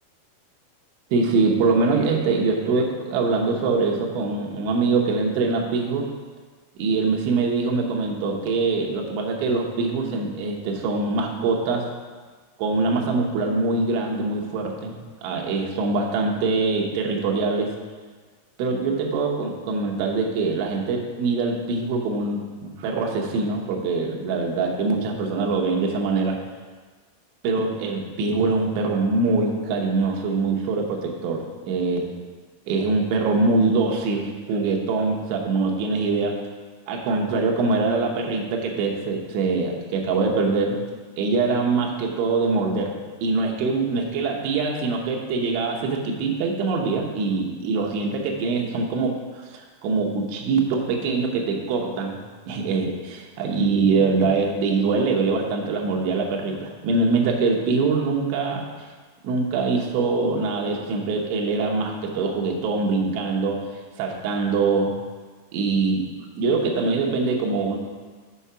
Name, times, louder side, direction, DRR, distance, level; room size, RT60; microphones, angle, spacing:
voice 1, 1.1-6.1 6.8-11.9 12.6-17.7 18.6-26.4 27.4-32.1 32.7-36.4 36.9-40.8 41.2-49.2 49.5-52.2 52.5-58.7 59.2-63.7 64.0-64.9 65.5-66.0 66.4-67.8, right 3 dB, 75° right, 0 dB, 3.1 m, -23 dB
7.1 x 5.7 x 5.6 m, 1.4 s
omnidirectional pair, 5.9 m